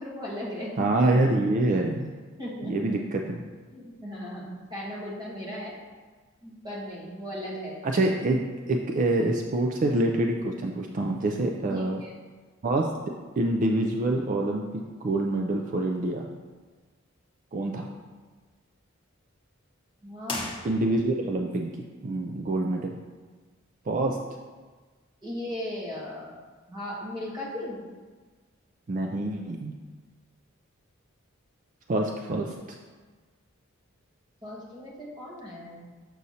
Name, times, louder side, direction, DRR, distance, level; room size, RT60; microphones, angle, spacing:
voice 1, 0.0-1.0 2.4-3.0 3.7-5.7 6.4-7.8 11.7-12.1 20.0-20.5 25.2-26.3 26.7-27.8 34.4-35.9, left 1 dB, 20° right, -5 dB, 1.5 m, -37 dB
voice 2, 0.8-2.1 2.6-3.4 7.8-8.4 8.7-12.0 12.6-12.9 13.4-16.3 17.5-17.9 20.6-21.7 22.0-22.9 23.9-24.2 28.9-29.7 31.9-32.8, right 2 dB, 40° right, 1 dB, 0.4 m, -26 dB
sound 1, 20.2-21.3, left 3 dB, 25° left, 0.9 m, -36 dB
6.7 x 6.2 x 2.8 m, 1.4 s
head